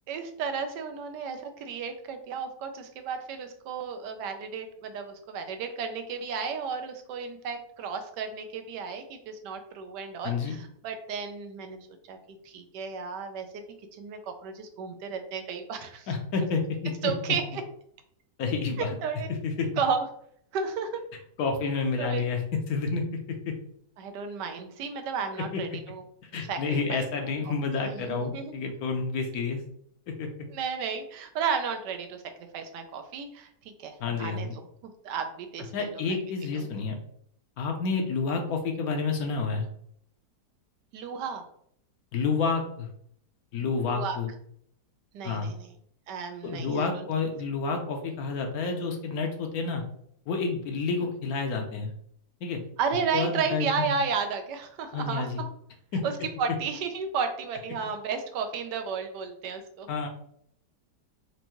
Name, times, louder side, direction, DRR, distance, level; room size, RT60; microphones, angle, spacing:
voice 1, 0.1-11.8 12.1-13.6 13.9-16.1 17.0-17.6 19.0-19.3 19.8-20.1 20.5-21.0 22.0-22.3 24.0-26.0 26.4-27.1 27.4-27.5 27.8-28.5 30.5-32.2 32.5-36.2 36.5-36.7 40.9-41.4 43.9-44.2 45.1-45.7 46.1-47.0 52.8-55.3 56.0-56.1 56.4-60.1, right 6 dB, 85° right, 7 dB, 1.3 m, -33 dB
voice 2, 10.2-10.6 16.1-17.1 18.4-18.9 19.4-19.7 21.4-23.5 25.5-25.6 26.3-29.6 30.2-30.3 34.0-34.5 35.7-37.0 37.6-39.7 42.1-42.9 43.5-44.3 45.2-45.5 46.4-49.8 50.3-51.9 52.4-52.6 53.1-53.9 54.9-55.4 55.9-56.0 59.9-60.1, left 4 dB, 70° left, 3 dB, 1.1 m, -29 dB
4.6 x 2.6 x 3.0 m, 0.67 s
omnidirectional pair, 1.8 m